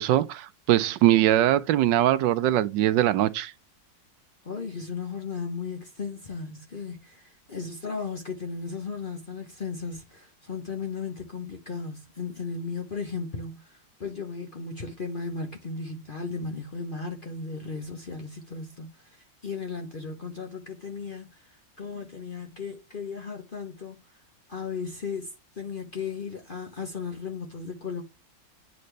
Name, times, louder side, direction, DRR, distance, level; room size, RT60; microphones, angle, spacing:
voice 1, 0.0-3.5, right 13 dB, 80° right, 1.2 m, -22 dB
voice 2, 4.4-24.0 24.5-28.0, left 5 dB, 40° left, 0.8 m, -36 dB
8.5 x 4.0 x 3.2 m
omnidirectional pair, 2.0 m